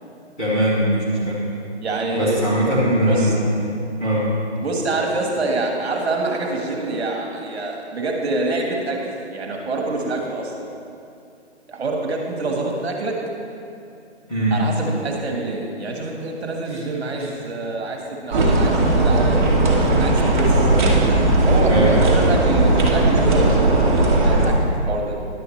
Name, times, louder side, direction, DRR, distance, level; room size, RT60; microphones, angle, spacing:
voice 1, 0.4-1.4 2.1-3.4 4.0-4.3 14.3-14.6 16.7-16.8 17.2-17.3 21.7-21.9, right 1 dB, 5° left, -13 dB, 0.6 m, -20 dB
voice 2, 1.8-2.4 3.0-3.3 4.6-10.7 11.7-13.2 14.5-19.5 20.0-20.7 21.5-25.2, right 2 dB, 65° right, 1 dB, 1.5 m, -26 dB
sound 1, 18.3-24.5, right 2 dB, 45° right, 1.4 m, -17 dB
11.0 x 7.8 x 3.2 m, 2.6 s
hypercardioid pair, 160°, 34 cm